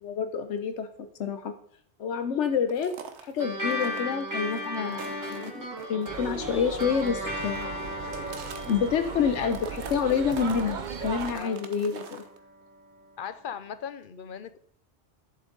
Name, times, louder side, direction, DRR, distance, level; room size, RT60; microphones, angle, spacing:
voice 1, 0.0-0.9 1.2-1.5 2.0-2.9 3.2-7.7 8.6-12.2, left 6 dB, 85° left, 9 dB, 1.1 m, -28 dB
sound 1, 2.7-3.4 3.7-6.3 6.5-7.1 7.4-9.2 9.5-12.4, right 6 dB, 75° right, 1.2 m, -44 dB
sound 2, 3.4-12.2, left 1 dB, 15° right, 2.5 m, -36 dB
sound 3, 6.1-11.3, right 5 dB, 45° right, 0.8 m, -38 dB
voice 2, 11.3-11.7 13.2-14.6, left 7 dB, 55° left, 13 dB, 0.7 m, -38 dB
11.5 x 7.2 x 3.9 m, 0.65 s
omnidirectional pair, 1.2 m